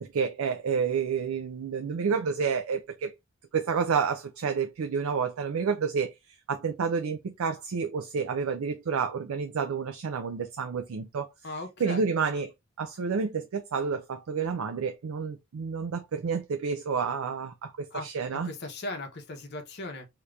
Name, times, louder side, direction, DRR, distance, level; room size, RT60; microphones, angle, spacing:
voice 1, 0.0-3.1 3.5-6.1 6.5-11.3 11.8-12.5 12.8-18.5, right 6 dB, 80° right, 0.4 m, -29 dB
voice 2, 11.4-12.0 17.9-18.1 18.3-20.1, left 2 dB, 50° left, 0.8 m, -38 dB
2.9 x 2.5 x 3.1 m
head